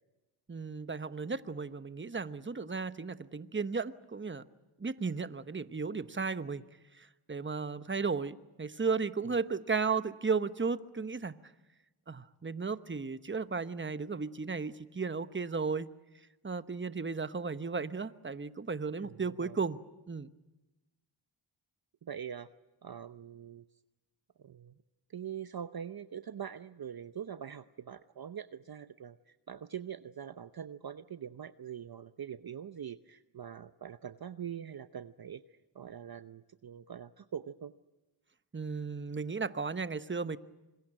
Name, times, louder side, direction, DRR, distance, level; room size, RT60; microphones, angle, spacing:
voice 1, 0.5-4.4 4.8-6.6 7.0-11.3 12.1-15.9 16.4-19.8 20.1-20.3 38.5-40.4, right 4 dB, 25° right, 12 dB, 1.1 m, -35 dB
voice 2, 19.0-19.6 22.0-22.5 22.8-23.7 24.4-24.8 25.1-35.4 35.7-37.7, right 8 dB, 45° right, 11 dB, 0.8 m, -43 dB
26.0 x 21.5 x 9.0 m, 1.1 s
cardioid pair, 50°, 50 cm